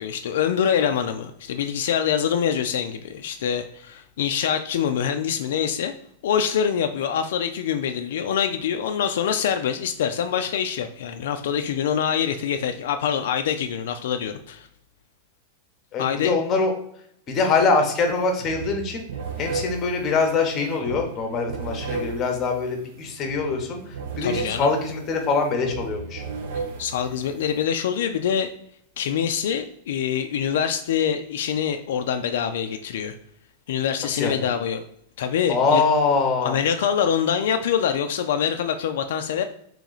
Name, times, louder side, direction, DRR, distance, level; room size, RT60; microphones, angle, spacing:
voice 1, 0.0-5.9 6.2-14.7 16.0-16.3 24.2-24.7 26.8-28.5 29.0-33.1 33.7-34.9 35.2-35.8 36.4-39.4, left 8 dB, 75° left, 7 dB, 0.3 m, -25 dB
voice 2, 15.9-16.7 17.3-19.0 19.4-23.8 24.2-26.2 34.1-34.5 35.5-36.6, left 4 dB, 25° left, 3 dB, 0.8 m, -23 dB
sound 1, 18.0-18.1 18.4-27.6, right 4 dB, 60° right, 0.5 m, -35 dB
3.1 x 3.0 x 3.8 m, 0.71 s
supercardioid pair, 165°, 0 cm